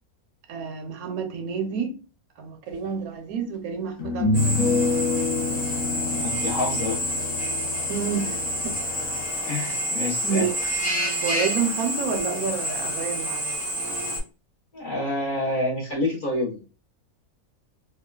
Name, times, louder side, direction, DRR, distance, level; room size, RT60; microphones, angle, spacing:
voice 1, 0.5-2.0 2.4-4.6 7.9-8.8 10.2-10.6 11.2-13.6, right 6 dB, 75° right, 1.1 m, -29 dB
sound 1, 2.9-3.0 4.0-9.3, left 3 dB, 65° left, 1.1 m, -27 dB
Drill, 4.3-14.2, equal, 15° left, 0.3 m, -28 dB
voice 2, 6.1-7.0 9.4-10.5 14.7-16.7, left 2 dB, 45° left, 0.8 m, -28 dB
3.0 x 2.2 x 2.2 m
omnidirectional pair, 1.5 m